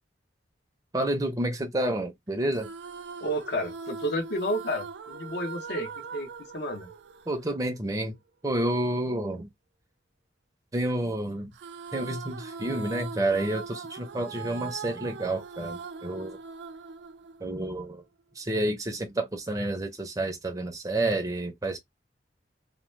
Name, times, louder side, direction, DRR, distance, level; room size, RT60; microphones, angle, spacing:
voice 1, 0.9-2.7 7.3-8.1 8.4-9.5 10.7-11.5 11.9-16.4 17.4-18.0 18.3-21.8, right 1 dB, 20° right, 0.6 m, -29 dB
sound 1, 2.5-8.0 11.5-18.0, right 5 dB, 70° right, 0.4 m, -41 dB
voice 2, 3.2-6.9, equal, 70° left, 0.9 m, -31 dB
2.9 x 2.1 x 3.1 m
head